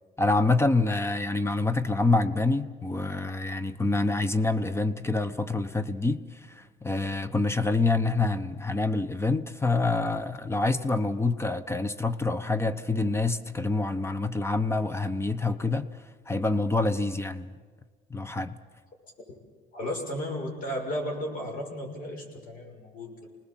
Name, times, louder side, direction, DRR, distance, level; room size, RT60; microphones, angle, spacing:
voice 1, 0.2-15.9 16.3-17.5 18.1-18.6, left 3 dB, 15° left, 13 dB, 0.9 m, -26 dB
voice 2, 19.7-23.1, equal, 55° left, 1 dB, 6.5 m, -34 dB
28.0 x 19.5 x 7.4 m, 1.5 s
cardioid pair, 110°, 17 cm